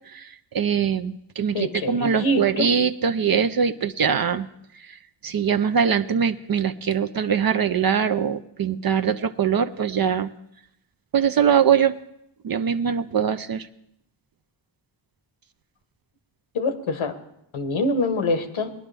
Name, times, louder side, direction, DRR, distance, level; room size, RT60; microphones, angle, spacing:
voice 1, 0.5-1.6 1.9-4.5 5.2-10.3 11.1-11.9 12.4-13.7, right 7 dB, 50° right, 10 dB, 0.5 m, -22 dB
voice 2, 1.5-2.8 16.5-17.2 17.5-18.7, left 2 dB, 90° left, 7 dB, 1.3 m, -25 dB
19.5 x 10.5 x 3.4 m, 0.78 s
wide cardioid pair, 80°, 46 cm